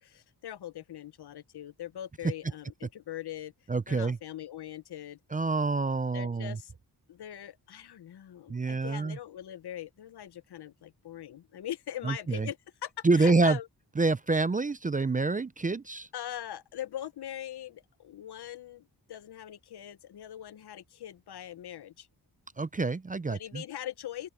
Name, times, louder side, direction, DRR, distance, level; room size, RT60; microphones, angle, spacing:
voice 1, 0.0-5.2 6.1-6.7 7.1-13.7 16.1-22.1 23.3-24.3, left 11 dB, 70° left, 0.8 m, -41 dB
voice 2, 3.7-4.2 5.3-6.6 8.5-9.2 12.0-12.5 13.0-13.6 14.0-16.1 22.6-23.6, right 3 dB, 20° right, 0.5 m, -27 dB
open air
wide cardioid pair, 105°, 40 cm